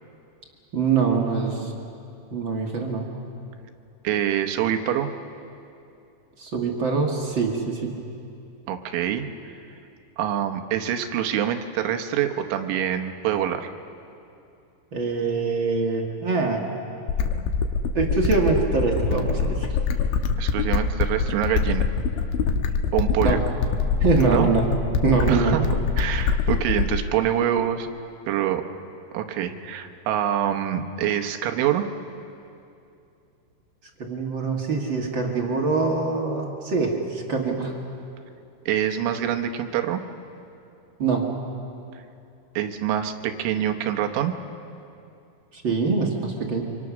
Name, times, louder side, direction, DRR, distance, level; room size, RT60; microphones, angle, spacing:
voice 1, 0.7-1.7 2.3-3.1 6.4-8.0 14.9-16.6 17.9-19.8 23.2-23.4 24.0-24.7 25.0-25.5 34.0-37.8 41.0-41.3 45.5-46.6, right 4 dB, 60° right, 1 dB, 1.3 m, -24 dB
voice 2, 4.1-5.1 8.7-9.5 10.2-13.7 20.4-21.9 22.9-23.4 24.3-24.5 25.3-27.9 28.3-28.6 29.1-31.9 38.7-40.0 42.6-44.4, right 10 dB, 90° right, 6 dB, 3.6 m, -25 dB
sound 1, 17.1-27.1, left 5 dB, 85° left, 3.5 m, -24 dB
28.0 x 25.5 x 6.2 m, 2.6 s
omnidirectional pair, 5.3 m